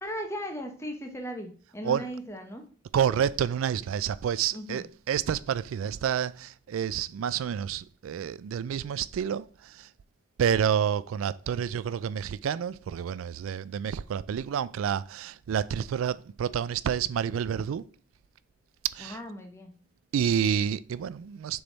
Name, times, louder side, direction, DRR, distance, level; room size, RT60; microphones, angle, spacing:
voice 1, 0.0-2.6 4.5-4.8 19.0-19.7, equal, 15° left, 0.9 m, -37 dB
voice 2, 2.9-9.9 10.4-17.8 18.8-19.2 20.1-21.6, right 8 dB, 90° right, 0.3 m, -29 dB
6.8 x 3.4 x 4.0 m
head